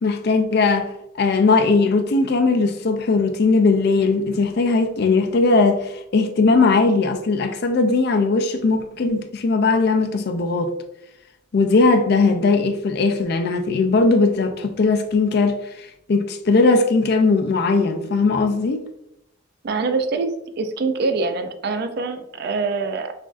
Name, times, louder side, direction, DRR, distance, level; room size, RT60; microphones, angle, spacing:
voice 1, 0.0-10.7 11.5-18.9, left 3 dB, 50° left, 0.4 m, -19 dB
voice 2, 19.6-23.1, right 4 dB, 50° right, 0.4 m, -24 dB
6.0 x 2.6 x 2.4 m
head